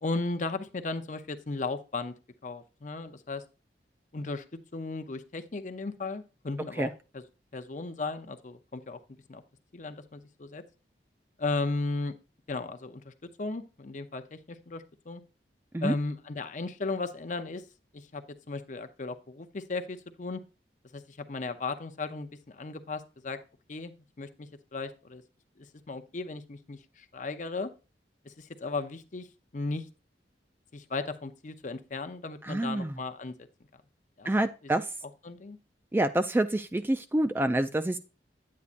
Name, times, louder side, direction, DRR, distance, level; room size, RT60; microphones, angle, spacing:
voice 1, 0.0-2.1 2.4-3.4 4.1-7.2 7.5-9.0 9.3-9.4 9.7-10.6 11.4-12.2 12.5-15.2 15.8-17.6 17.9-20.4 20.9-23.4 23.7-25.2 25.6-27.7 28.2-29.3 29.5-29.9 30.7-33.3 34.2-34.3 35.2-35.6, left 3 dB, 45° left, 9 dB, 0.6 m, -36 dB
voice 2, 32.4-33.0 34.3-34.9 35.9-38.0, right 1 dB, 10° right, 9 dB, 0.3 m, -27 dB
9.4 x 8.5 x 2.5 m, 0.32 s
head